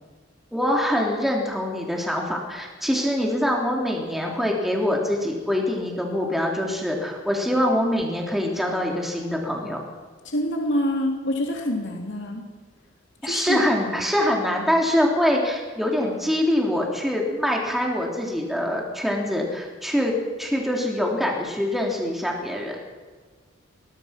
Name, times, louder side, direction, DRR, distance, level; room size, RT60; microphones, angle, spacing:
voice 1, 0.5-9.8 13.2-22.8, left 1 dB, ahead, -1 dB, 3.3 m, -24 dB
voice 2, 10.2-12.4 13.2-13.6, left 1 dB, 60° left, 1 dB, 3.1 m, -26 dB
21.0 x 21.0 x 6.0 m, 1.5 s
head